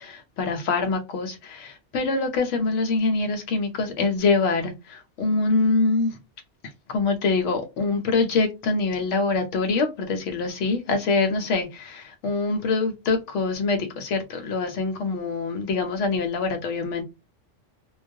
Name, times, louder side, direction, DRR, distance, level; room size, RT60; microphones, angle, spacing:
voice 1, 0.0-6.1 6.9-17.0, left 3 dB, 80° left, 1.0 m, -24 dB
2.3 x 2.1 x 2.6 m
omnidirectional pair, 1.3 m